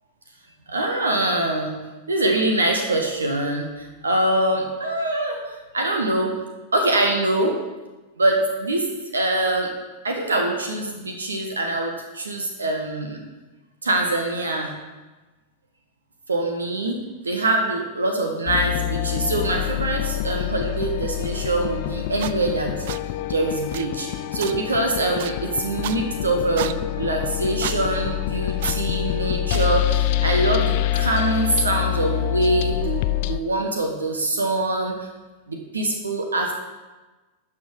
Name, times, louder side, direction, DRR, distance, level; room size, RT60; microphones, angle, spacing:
voice 1, 0.7-1.8 2.1-6.3 6.7-7.5 8.2-8.9 9.1-9.7 10.0-13.2 13.8-14.7 16.3-22.7 23.3-35.0 35.5-36.5, right 2 dB, 75° right, 3 dB, 1.2 m, -24 dB
sound 1, 18.5-33.4, left 14 dB, 50° left, 0.4 m, -26 dB
sound 2, 22.2-22.3 22.8-23.0 23.7-23.9 24.4-24.5 25.2-25.3 25.8-26.0 26.6-26.7 27.6-27.8 28.6-28.8 29.5-29.7, right 12 dB, 55° right, 0.3 m, -31 dB
11.5 x 6.1 x 4.7 m, 1.2 s
figure-of-eight pair, 90°, 0 cm